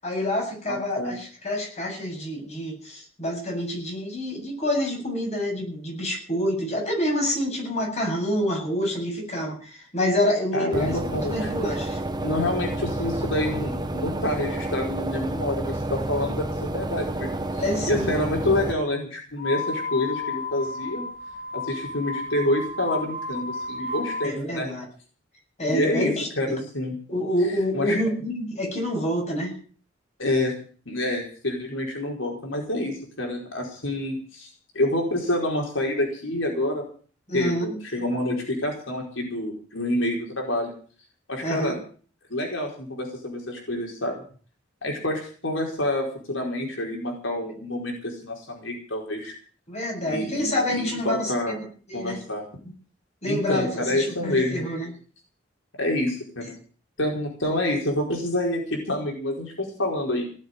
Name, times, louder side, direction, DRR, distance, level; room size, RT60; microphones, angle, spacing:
voice 1, 0.0-12.0 17.6-18.1 24.2-24.8 25.6-26.6 27.1-29.5 37.3-37.8 41.4-41.7 49.7-51.6 51.9-52.2 53.2-54.9, left 1 dB, 35° left, 1 dB, 8.0 m, -27 dB
voice 2, 0.7-1.1 10.5-11.7 12.2-17.6 17.9-21.0 21.5-24.7 25.7-26.9 27.7-28.0 30.2-30.5 30.9-36.8 37.3-40.7 41.3-41.8 42.3-44.2 44.8-49.3 50.0-51.6 51.9-52.4 53.2-54.6 55.8-56.4 57.0-60.2, left 1 dB, 85° left, 1 dB, 4.9 m, -27 dB
sound 1, 10.7-18.7, right 1 dB, 20° right, 1.2 m, -30 dB
sound 2, 19.4-24.3, left 3 dB, 55° left, 2.4 m, -32 dB
18.0 x 7.7 x 9.6 m, 0.42 s
head